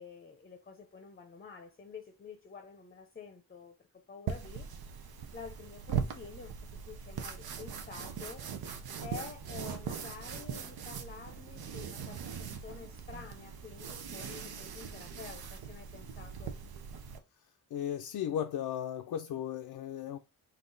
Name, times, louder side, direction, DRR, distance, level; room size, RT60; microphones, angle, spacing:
voice 1, 0.0-4.7 5.3-8.5 9.0-16.6, left 5 dB, 25° left, 0.6 m, -49 dB
sound 1, 4.3-17.2, right 7 dB, 80° right, 0.8 m, -40 dB
sound 2, 9.2-13.8, right 4 dB, 65° right, 1.3 m, -58 dB
voice 2, 17.7-20.2, left 10 dB, 75° left, 0.5 m, -35 dB
4.0 x 2.8 x 3.8 m
wide cardioid pair, 120°, 36 cm